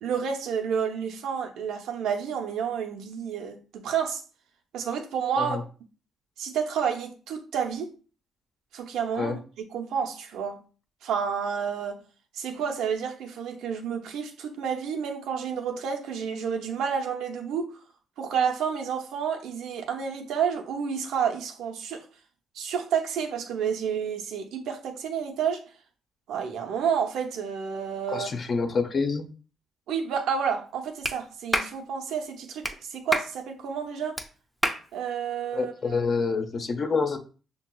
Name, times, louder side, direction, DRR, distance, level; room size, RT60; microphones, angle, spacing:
voice 1, 0.0-4.2 4.7-5.6 6.4-7.9 8.7-10.6 11.0-12.0 12.3-17.7 18.2-22.0 22.5-25.6 26.3-28.3 29.9-34.2 34.9-36.0, right 7 dB, 85° right, 0.6 m, -30 dB
voice 2, 28.1-29.3 35.5-37.2, left 4 dB, 45° left, 0.6 m, -27 dB
Clapping, 31.0-31.2 31.5-31.7 32.6-32.8 33.1-33.3 34.2-34.3 34.6-34.8, equal, ahead, 0.5 m, -26 dB
5.9 x 2.8 x 2.2 m
cardioid pair, 90°, 0 cm